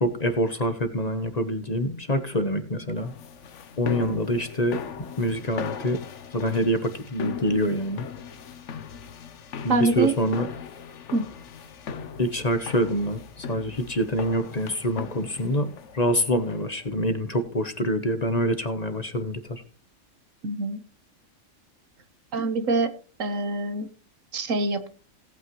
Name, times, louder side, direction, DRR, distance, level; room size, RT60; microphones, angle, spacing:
voice 1, 0.0-3.1 3.8-4.8 5.2-6.0 6.3-8.1 9.6-10.5 12.2-19.6, equal, 35° left, 9 dB, 1.1 m, -26 dB
sound 1, 3.0-16.9, left 6 dB, 65° left, 1.1 m, -39 dB
voice 2, 9.7-10.2 11.1-11.2 20.4-20.8 22.3-22.9 23.2-23.9 24.3-24.9, right 2 dB, 75° right, 10 dB, 1.6 m, -25 dB
18.0 x 8.8 x 3.1 m, 0.36 s
omnidirectional pair, 1.3 m